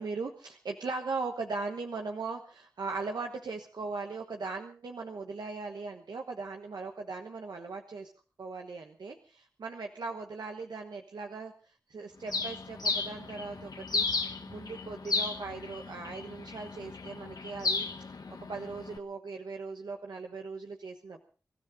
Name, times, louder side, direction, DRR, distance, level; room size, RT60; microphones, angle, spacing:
voice 1, 0.0-8.1 8.4-11.5 11.9-17.9 18.3-21.2, right 4 dB, 85° right, 3 dB, 1.3 m, -39 dB
Bird, 12.3-19.0, left 4 dB, 70° left, 1.4 m, -34 dB
25.0 x 13.0 x 3.8 m, 0.38 s
cardioid pair, 40°, 7 cm